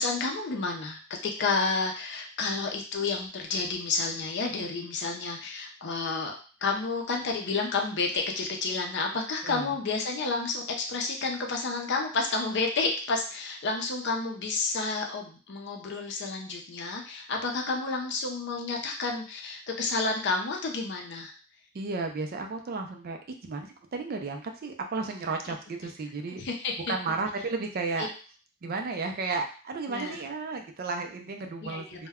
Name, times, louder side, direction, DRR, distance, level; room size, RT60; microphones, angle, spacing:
voice 1, 0.0-6.3 6.6-21.3 26.4-26.9 28.0-28.1 29.9-30.2 31.6-32.1, left 3 dB, 55° left, 2 dB, 0.5 m, -30 dB
voice 2, 21.7-26.4 26.9-28.1 28.6-32.1, right 3 dB, 45° right, 4 dB, 0.4 m, -33 dB
2.1 x 2.1 x 3.5 m, 0.38 s
head